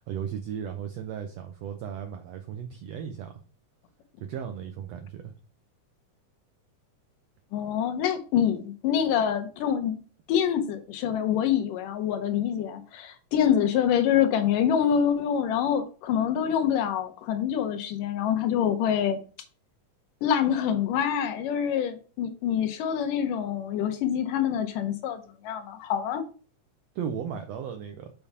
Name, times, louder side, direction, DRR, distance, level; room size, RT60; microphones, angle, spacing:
voice 1, 0.0-3.4 4.2-5.3 26.9-28.1, right 8 dB, 80° right, 1.4 m, -36 dB
voice 2, 7.5-9.9 10.3-19.2 20.2-26.2, left 9 dB, 80° left, 2.5 m, -26 dB
6.9 x 3.4 x 5.4 m
omnidirectional pair, 3.7 m